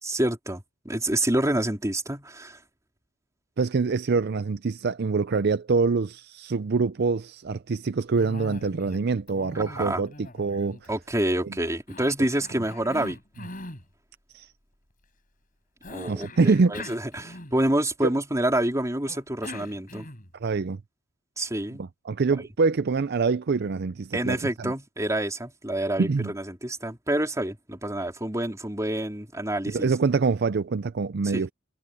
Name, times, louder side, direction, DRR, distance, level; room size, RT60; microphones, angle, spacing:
voice 1, 0.0-2.6 9.5-10.0 10.9-13.2 15.9-20.1 21.4-21.8 24.1-29.9 31.3-31.4, right 1 dB, 15° right, 4.1 m, -27 dB
voice 2, 3.6-10.8 14.3-14.5 16.1-16.7 18.0-18.1 20.4-20.8 21.8-24.7 26.0-26.3 29.7-31.5, right 4 dB, 55° right, 0.5 m, -25 dB
Cough, 8.1-9.0 9.3-11.3 11.9-13.8 15.8-17.8 19.1-20.4, left 2 dB, 45° left, 5.9 m, -42 dB
head